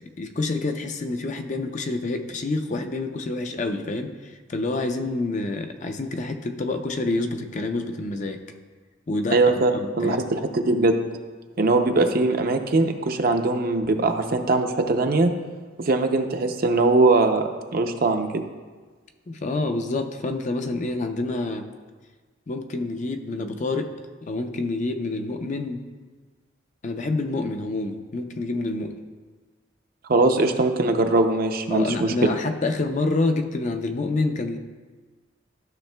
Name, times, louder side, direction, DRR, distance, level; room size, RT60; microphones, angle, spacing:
voice 1, 0.0-8.4 9.1-9.4 9.7-10.2 19.3-21.7 22.5-23.9 24.2-25.8 26.8-28.9 31.7-34.6, left 2 dB, 40° left, 6 dB, 0.5 m, -27 dB
voice 2, 9.3-9.7 10.0-11.0 11.6-15.3 15.8-17.4 17.7-18.4 30.1-32.1, right 3 dB, 50° right, 5 dB, 0.5 m, -21 dB
13.0 x 6.3 x 2.2 m, 1.4 s
head